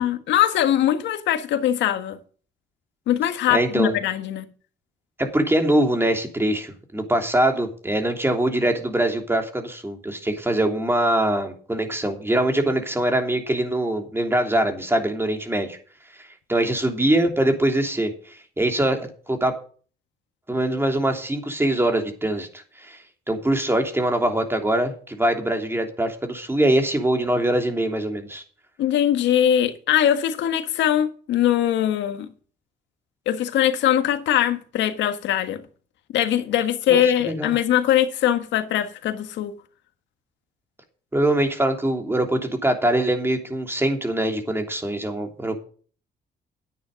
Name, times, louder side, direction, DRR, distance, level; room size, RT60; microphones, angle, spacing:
voice 1, 0.0-2.2 3.1-4.5 28.8-32.3 33.3-35.6 36.1-39.5, left 11 dB, 80° left, 1.6 m, -21 dB
voice 2, 3.5-3.9 5.2-15.8 16.2-19.5 20.5-22.5 22.8-23.0 23.3-28.4 36.9-37.5 41.1-45.6, right 1 dB, 15° right, 3.0 m, -23 dB
10.5 x 9.3 x 5.3 m
cardioid pair, 85°, 18 cm